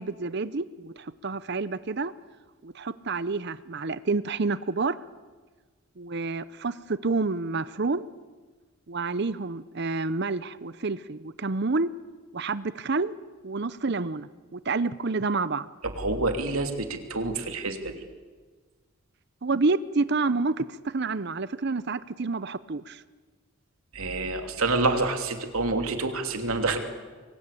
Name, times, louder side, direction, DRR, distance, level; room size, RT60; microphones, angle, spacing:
voice 1, 0.0-2.1 2.6-5.0 6.0-8.1 8.9-11.9 12.3-13.2 13.4-15.7 19.4-23.0, right 3 dB, 50° right, 16 dB, 0.7 m, -29 dB
voice 2, 16.0-17.9 23.9-26.8, right 3 dB, 85° right, 5 dB, 3.1 m, -27 dB
27.5 x 22.5 x 8.5 m, 1.4 s
head